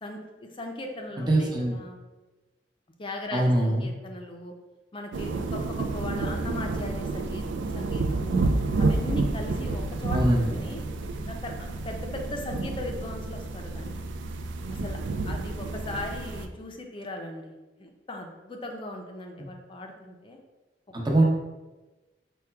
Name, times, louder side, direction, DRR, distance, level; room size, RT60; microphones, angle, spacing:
voice 1, 0.0-2.0 3.0-4.5 4.9-7.4 7.7-8.4 8.8-10.2 10.6-10.8 11.2-13.9 14.7-15.0 15.2-20.4, left 1 dB, 30° left, 2 dB, 0.5 m, -38 dB
voice 2, 1.2-1.7 3.3-3.9 10.1-10.6 19.4-19.5 20.9-21.3, right 1 dB, 25° right, -1 dB, 0.8 m, -23 dB
sound 1, 5.1-16.5, right 3 dB, 85° right, 0.4 m, -30 dB
4.8 x 2.3 x 4.4 m, 1.2 s
head